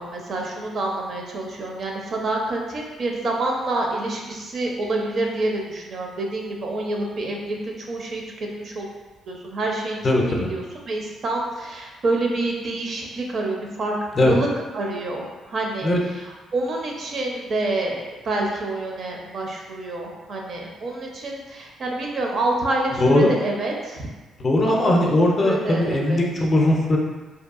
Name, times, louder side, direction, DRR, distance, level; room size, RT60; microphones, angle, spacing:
voice 1, 0.0-8.9 9.3-10.0 10.3-13.9 14.2-14.5 14.7-24.1 24.7-26.2, right 2 dB, 55° right, 0 dB, 0.5 m, -27 dB
voice 2, 10.0-10.5 14.1-14.4 15.8-16.0 23.0-23.3 24.4-27.0, left 1 dB, 35° left, -1 dB, 0.4 m, -19 dB
2.7 x 2.3 x 2.4 m, 1.2 s
cardioid pair, 90°, 0 cm